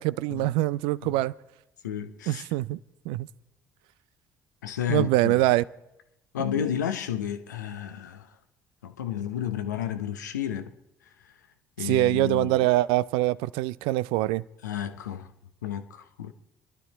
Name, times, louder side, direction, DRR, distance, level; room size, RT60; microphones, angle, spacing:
voice 1, 0.0-1.3 2.3-2.8 3.1-3.3 4.9-5.6 11.8-14.4, right 17 dB, 65° right, 0.5 m, -24 dB
voice 2, 1.8-2.5 4.6-5.4 6.3-8.3 8.8-10.7 11.8-12.7 14.6-15.3 15.6-16.3, left 9 dB, 85° left, 0.8 m, -32 dB
27.5 x 12.0 x 4.1 m
figure-of-eight pair, 50°, 9 cm